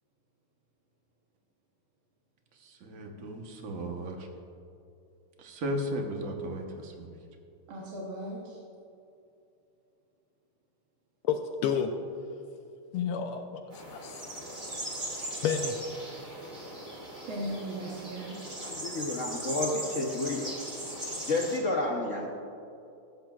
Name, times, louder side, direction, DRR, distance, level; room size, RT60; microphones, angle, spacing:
voice 1, 2.6-4.3 5.4-7.1, equal, 50° right, 2 dB, 1.2 m, -35 dB
voice 2, 7.7-8.6 17.3-18.4, right 1 dB, 75° right, -3 dB, 1.9 m, -37 dB
voice 3, 11.2-11.9 12.9-14.2 15.4-15.8, left 7 dB, 85° left, 4 dB, 1.5 m, -30 dB
sound 1, 13.7-21.6, right 1 dB, 25° right, 1.8 m, -39 dB
voice 4, 18.6-20.5 21.3-22.3, left 2 dB, 60° left, -1 dB, 0.8 m, -30 dB
16.0 x 8.1 x 2.3 m, 2.7 s
omnidirectional pair, 2.4 m